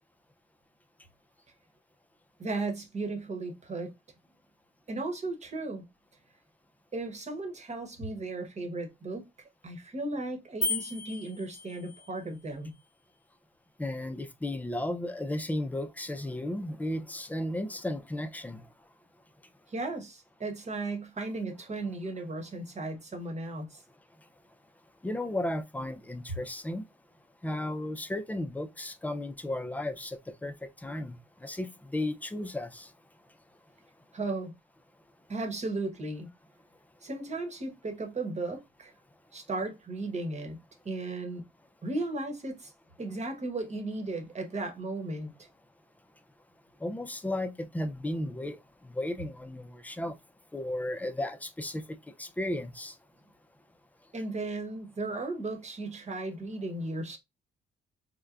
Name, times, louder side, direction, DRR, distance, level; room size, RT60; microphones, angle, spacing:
voice 1, 2.4-3.9 4.9-5.9 6.9-9.2 9.6-12.7 19.7-23.8 34.1-34.5 35.3-36.3 37.0-38.9 39.3-40.6 40.8-41.4 41.8-42.7 43.0-45.3 54.1-57.2, right 2 dB, 35° right, 1.1 m, -35 dB
sound 1, 10.6-12.2, left 2 dB, 40° left, 0.8 m, -34 dB
voice 2, 13.8-18.7 24.1-24.3 25.0-26.8 27.4-32.9 46.8-50.2 50.5-53.0, left 1 dB, 10° left, 0.4 m, -34 dB
4.5 x 2.1 x 2.4 m
cardioid pair, 90°, 20 cm